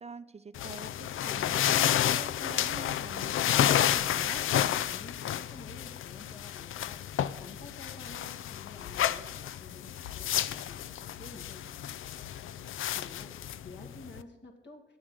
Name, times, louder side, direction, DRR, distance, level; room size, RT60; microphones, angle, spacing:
voice 1, 0.0-3.3 3.6-4.4, right 4 dB, 30° right, 13 dB, 0.5 m, -46 dB
sound 1, 0.5-14.2, left 11 dB, 80° left, 0.4 m, -31 dB
voice 2, 4.9-12.2 12.7-15.0, left 2 dB, 60° left, 1 dB, 2.3 m, -51 dB
8.7 x 7.3 x 7.8 m, 1.0 s
cardioid pair, 55°, 21 cm